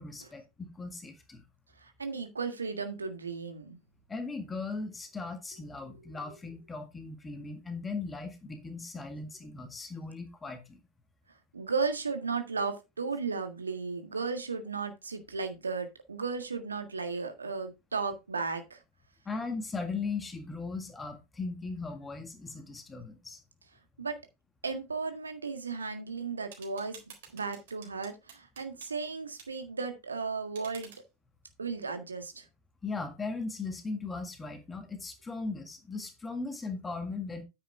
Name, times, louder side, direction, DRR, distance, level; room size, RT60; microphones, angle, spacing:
voice 1, 0.0-1.4 4.1-10.8 19.3-23.4 32.8-37.4, left 4 dB, 15° left, 1.8 m, -38 dB
voice 2, 1.8-3.8 6.1-6.4 11.5-18.8 24.0-24.2 24.6-27.0 27.3-30.9 31.6-32.5, right 4 dB, 75° right, 1.7 m, -35 dB
sound 1, 26.5-28.9 29.4-29.5 30.5-31.0, right 7 dB, 60° right, 3.8 m, -51 dB
9.8 x 7.8 x 3.4 m
figure-of-eight pair, 90°, 0 cm